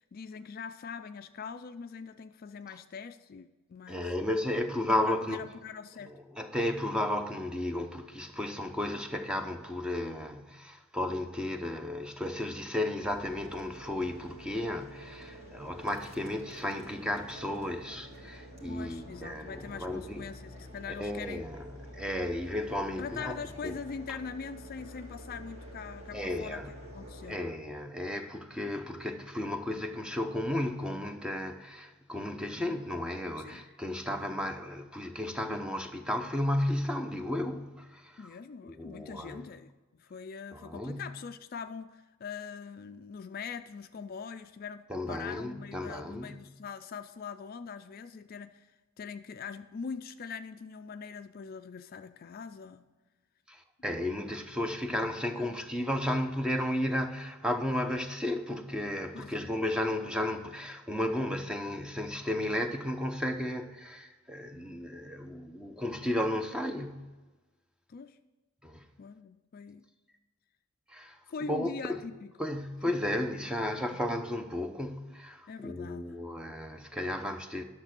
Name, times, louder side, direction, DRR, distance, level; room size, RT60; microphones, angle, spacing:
voice 1, 0.0-4.2 4.9-6.2 18.7-21.5 23.0-27.4 33.4-33.6 34.1-34.3 38.2-48.7 49.0-52.8 53.9-54.1 55.3-55.6 59.1-59.5 67.9-68.2 69.0-69.9 71.3-72.5 73.9-74.0 75.5-76.2 76.5-76.6, left 5 dB, 45° left, 0.4 m, -43 dB
voice 2, 3.9-5.4 6.0-20.2 21.0-21.7 21.9-23.4 23.6-23.7 26.1-26.7 27.3-38.3 38.6-39.5 40.5-41.0 44.9-46.4 53.5-67.1 68.6-68.8 70.9-71.2 71.5-71.7 72.4-77.6, left 1 dB, 5° right, 0.7 m, -33 dB
sound 1, 13.0-27.3, equal, 30° right, 1.8 m, -48 dB
10.5 x 6.7 x 6.0 m
head